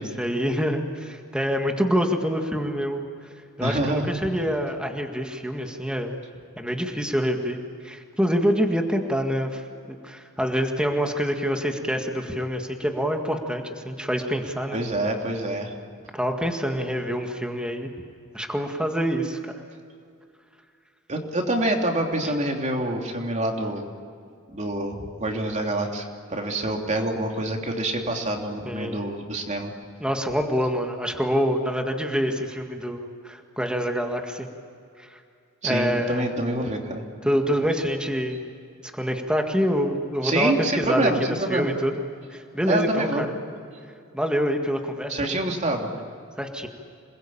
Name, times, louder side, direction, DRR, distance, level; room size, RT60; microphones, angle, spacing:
voice 1, 0.2-3.0 3.6-6.2 6.6-7.6 7.8-9.6 9.9-14.8 16.1-17.9 18.3-19.6 28.6-29.1 30.0-34.5 35.0-35.2 35.6-36.3 37.2-38.4 38.8-41.9 42.3-43.3 44.1-45.4 46.4-46.7, equal, 5° right, 3 dB, 1.8 m, -26 dB
voice 2, 3.6-4.2 14.7-15.7 21.1-23.8 24.5-29.7 35.6-37.0 40.2-41.7 42.7-43.2 45.1-45.9, right 1 dB, 35° right, 2 dB, 3.1 m, -26 dB
27.5 x 21.0 x 8.7 m, 2.4 s
head